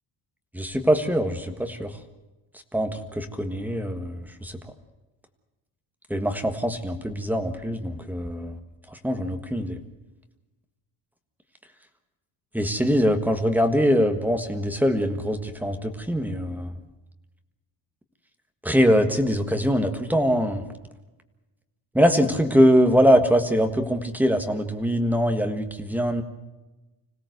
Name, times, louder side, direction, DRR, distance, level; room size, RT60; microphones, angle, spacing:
voice 1, 0.5-2.0 2.7-4.6 6.1-8.6 8.9-9.8 12.5-16.7 18.6-20.6 21.9-26.2, equal, 5° right, 7 dB, 1.6 m, -23 dB
26.0 x 17.0 x 8.0 m, 1.1 s
cardioid pair, 165°, 45 cm